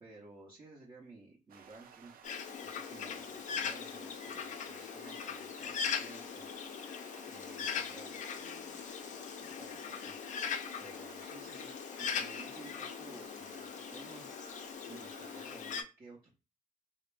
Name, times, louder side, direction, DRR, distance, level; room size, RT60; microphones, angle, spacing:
voice 1, 0.0-2.1 2.6-6.5 7.3-10.1 10.8-11.7 12.0-14.3 14.9-16.4, right 3 dB, 35° right, -3 dB, 0.8 m, -54 dB
sound 1, 1.5-15.5, right 7 dB, 60° right, 0.5 m, -56 dB
Bird, 2.2-15.8, left 7 dB, 50° left, 0.4 m, -40 dB
3.4 x 2.1 x 3.2 m, 0.29 s
cardioid pair, 120°, 16 cm